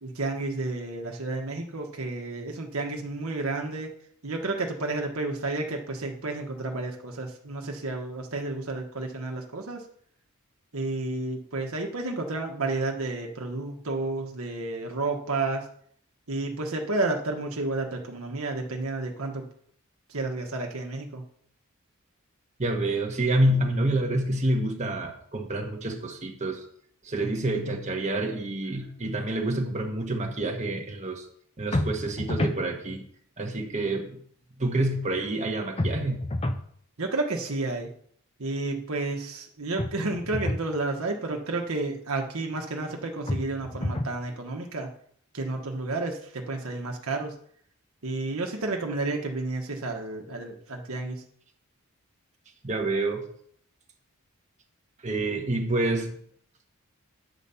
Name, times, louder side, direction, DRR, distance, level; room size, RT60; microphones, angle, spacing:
voice 1, 0.0-3.9 4.2-9.8 10.7-15.7 16.3-19.4 20.1-21.2 37.0-37.9 38.4-44.9 45.3-47.3 48.0-51.2, right 2 dB, 70° right, 1 dB, 1.3 m, -31 dB
voice 2, 22.6-26.6 27.0-31.3 31.6-33.1 33.4-34.2 34.6-36.2 52.6-53.3 55.0-56.1, right 1 dB, 30° right, 3 dB, 1.1 m, -27 dB
sound 1, 31.7-32.6 35.8-36.7 39.8-40.7 43.3-44.2, left 1 dB, 25° left, 0.6 m, -29 dB
10.0 x 4.1 x 6.9 m, 0.63 s
head